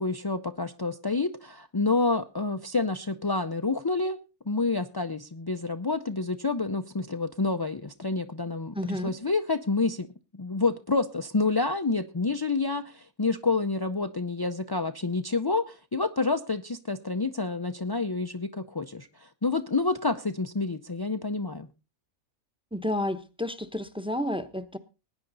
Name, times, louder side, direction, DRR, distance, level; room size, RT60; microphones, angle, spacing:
voice 1, 0.0-4.2 4.5-10.1 10.3-21.7, left 3 dB, 35° left, 0.3 m, -28 dB
voice 2, 8.7-9.1 22.7-24.8, left 1 dB, 5° right, 0.7 m, -31 dB
19.5 x 9.8 x 4.0 m
omnidirectional pair, 1.5 m